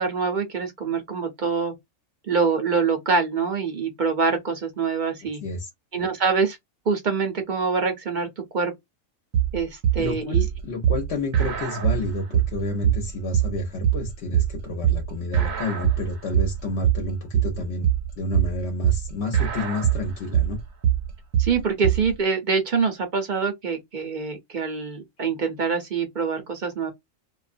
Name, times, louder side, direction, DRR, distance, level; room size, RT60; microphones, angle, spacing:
voice 1, 0.0-1.7 2.3-5.4 5.9-6.6 6.9-8.7 9.5-10.4 21.4-26.9, right 5 dB, 50° right, 0.6 m, -25 dB
sound 1, 9.3-22.1, right 10 dB, 80° right, 1.0 m, -23 dB
voice 2, 10.0-17.9 18.2-20.6, left 2 dB, 60° left, 0.9 m, -30 dB
2.4 x 2.2 x 2.5 m
omnidirectional pair, 1.4 m